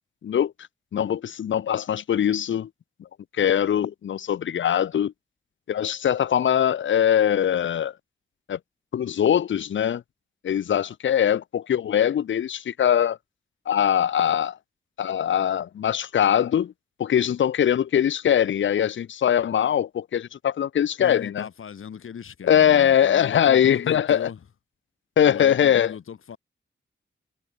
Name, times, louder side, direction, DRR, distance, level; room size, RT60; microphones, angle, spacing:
voice 1, 0.2-0.5 0.9-2.7 3.4-5.1 5.7-7.9 8.5-8.6 8.9-10.0 10.4-13.2 13.7-14.6 15.0-16.7 17.0-21.5 22.4-24.3 25.2-25.9, left 9 dB, 70° left, 0.5 m, -22 dB
voice 2, 21.0-24.4 25.2-26.4, left 7 dB, 85° left, 1.2 m, -38 dB
wide cardioid pair, 80°, 21 cm